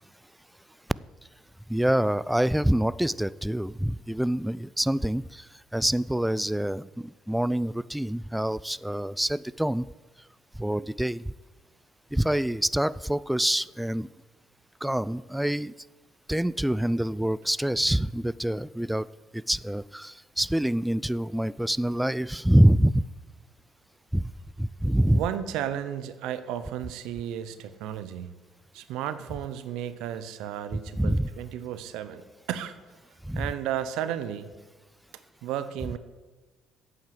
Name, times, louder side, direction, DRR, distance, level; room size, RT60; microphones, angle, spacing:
voice 1, 1.7-5.2 5.7-6.9 7.3-9.9 10.6-11.2 12.1-14.1 14.8-15.7 16.3-23.0 24.1-24.2 24.6-25.2 31.0-31.3 33.3-33.5, right 1 dB, 5° right, 20 dB, 0.3 m, -25 dB
voice 2, 25.1-28.3 28.7-32.8 33.3-34.5 35.4-36.0, right 10 dB, 80° right, 12 dB, 0.7 m, -33 dB
8.7 x 7.6 x 7.7 m, 1.2 s
supercardioid pair, 70°, 0 cm